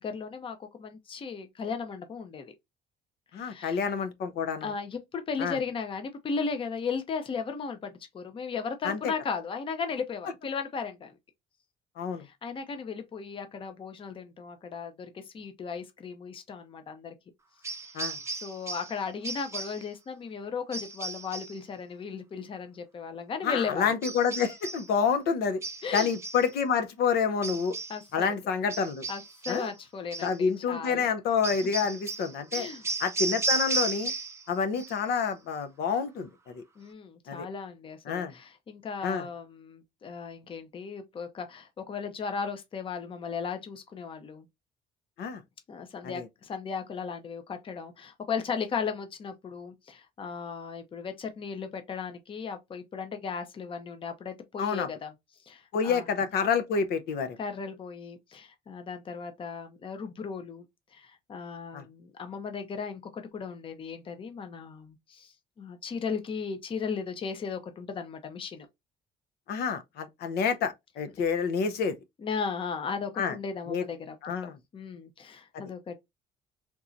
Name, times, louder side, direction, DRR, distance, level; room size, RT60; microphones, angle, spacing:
voice 1, 0.0-2.5 3.3-3.8 4.6-11.1 12.2-17.1 18.4-23.9 25.8-26.1 27.9-28.3 29.1-31.1 32.5-32.9 36.8-44.5 45.7-55.1 55.5-56.0 57.4-60.6 60.9-68.7 72.2-74.2 74.4-76.0, left 5 dB, 30° left, 0.7 m, -36 dB
voice 2, 3.3-4.7 5.4-5.6 8.8-9.1 12.0-12.2 17.9-18.2 23.4-25.6 25.9-27.8 28.1-29.0 29.5-29.7 30.2-32.7 33.0-34.1 34.5-36.6 37.3-37.5 38.1-38.3 39.0-39.3 45.2-45.4 46.0-46.3 54.6-54.9 55.7-57.4 61.7-61.8 69.5-72.0 73.2-73.4 73.7-73.8 74.2-74.6, left 6 dB, 70° left, 0.7 m, -28 dB
sound 1, 17.6-19.0 19.2-19.9 20.7-21.6 24.0-24.9 25.6-26.5 27.4-28.0 28.7-29.7 30.1-30.4 31.4-34.5 34.7-35.2, right 3 dB, 15° right, 0.5 m, -34 dB
3.7 x 2.9 x 2.6 m
cardioid pair, 135°, 17 cm